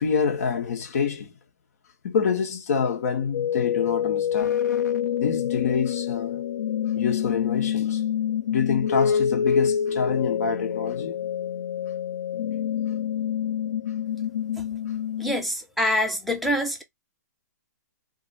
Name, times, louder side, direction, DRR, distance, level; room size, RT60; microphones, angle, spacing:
voice 1, 0.0-1.3 2.0-4.6 5.2-6.4 6.9-8.0 8.5-11.2, left 6 dB, 60° left, 1.2 m, -26 dB
sound 1, 3.3-15.3, left 8 dB, 85° left, 0.5 m, -26 dB
voice 2, 15.2-16.8, left 1 dB, ahead, 0.6 m, -25 dB
3.1 x 2.7 x 4.0 m
hypercardioid pair, 155°, 9 cm